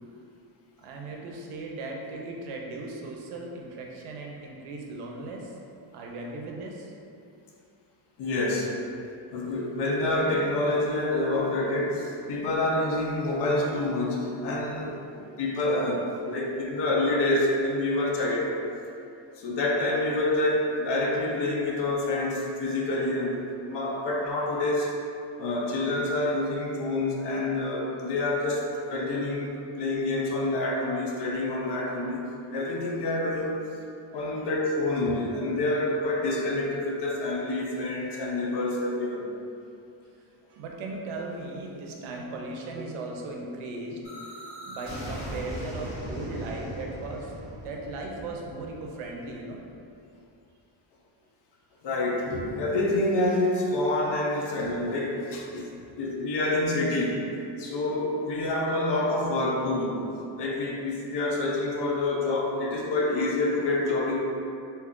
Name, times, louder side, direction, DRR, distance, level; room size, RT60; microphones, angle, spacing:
voice 1, 0.8-5.6 5.9-6.9 40.5-47.3 47.6-49.6, right 2 dB, 80° right, 0 dB, 0.6 m, -37 dB
voice 2, 8.2-8.8 9.3-18.5 19.4-24.9 25.4-33.6 34.1-39.3 51.8-55.7 55.9-57.2 57.6-60.1 60.4-64.2, left 2 dB, 55° left, -1 dB, 0.6 m, -27 dB
sound 1, 44.0-49.8, equal, 25° left, 1.3 m, -39 dB
2.8 x 2.3 x 3.6 m, 2.6 s
cardioid pair, 175°, 49 cm